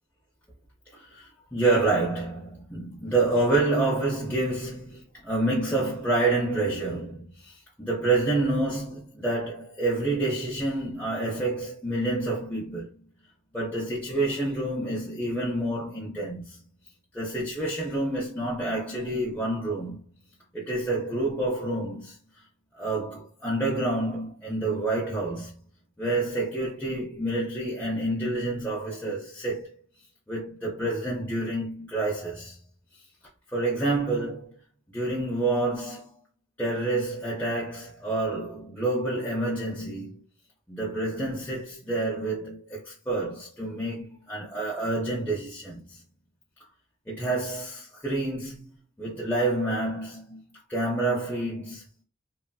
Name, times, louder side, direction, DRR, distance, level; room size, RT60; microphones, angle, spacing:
voice 1, 0.9-13.0 13.5-16.6 17.1-20.0 20.5-22.2 22.7-25.5 26.0-29.7 30.3-32.6 33.5-34.6 34.9-36.1 36.6-40.2 40.7-46.0 47.1-48.7 49.0-51.8, right 2 dB, 10° left, 0.5 m, -28 dB
3.1 x 2.5 x 2.2 m
head